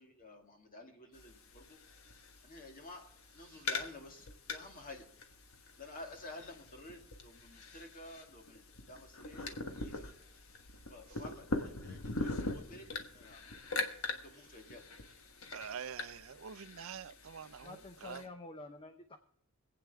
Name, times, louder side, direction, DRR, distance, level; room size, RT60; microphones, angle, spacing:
voice 1, 0.0-1.8 2.4-3.1 3.3-5.1 5.8-10.1 10.9-13.4 14.1-14.8, left 2 dB, 40° left, 2.1 m, -52 dB
sound 1, 1.1-18.2, left 3 dB, 75° left, 1.4 m, -43 dB
voice 2, 15.5-17.7 18.0-18.2, right 7 dB, 70° right, 0.5 m, -45 dB
voice 3, 17.6-19.2, left 2 dB, 25° left, 0.7 m, -49 dB
25.0 x 8.8 x 3.5 m
head